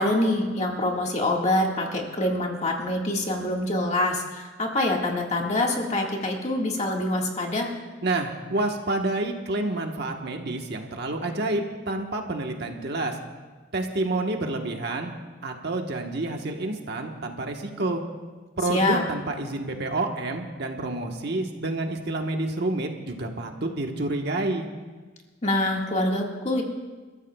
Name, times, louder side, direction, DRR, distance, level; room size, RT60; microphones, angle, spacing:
voice 1, 0.0-7.7 18.7-19.0 25.4-26.6, left 1 dB, 35° left, 0 dB, 1.8 m, -25 dB
voice 2, 8.0-13.2 13.7-15.1 15.4-18.0 18.6-24.7, right 2 dB, 60° right, 3 dB, 1.3 m, -29 dB
29.5 x 14.0 x 2.3 m, 1.3 s
head